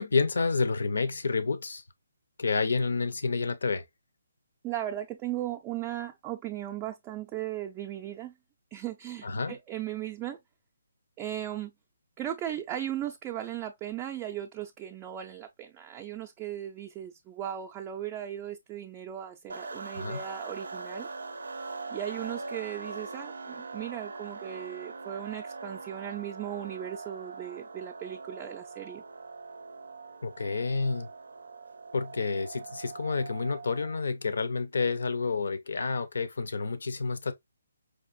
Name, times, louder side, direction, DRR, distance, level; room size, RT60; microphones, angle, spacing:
voice 1, 0.0-1.8 2.4-3.8 9.2-9.6 20.0-20.2 30.2-31.1 31.9-37.3, left 4 dB, 75° left, 0.6 m, -29 dB
voice 2, 4.6-8.4 8.7-10.4 11.2-11.7 12.2-21.1 21.9-29.0, right 12 dB, 20° right, 0.4 m, -37 dB
sound 1, 19.5-34.0, right 3 dB, 85° right, 0.4 m, -42 dB
4.8 x 2.5 x 2.4 m
hypercardioid pair, 150°, 0 cm